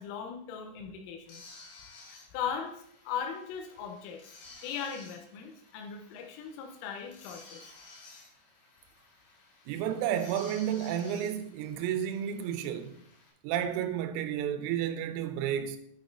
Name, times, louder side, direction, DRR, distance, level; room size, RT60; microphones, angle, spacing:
voice 1, 0.0-1.4 2.1-2.7 3.1-4.3 4.6-7.6, left 7 dB, 80° left, 3.4 m, -38 dB
sound 1, 1.3-13.3, left 3 dB, 60° left, 3.3 m, -54 dB
voice 2, 9.7-13.0 13.4-15.8, right 10 dB, 90° right, 3.4 m, -31 dB
8.9 x 8.9 x 2.7 m
omnidirectional pair, 6.0 m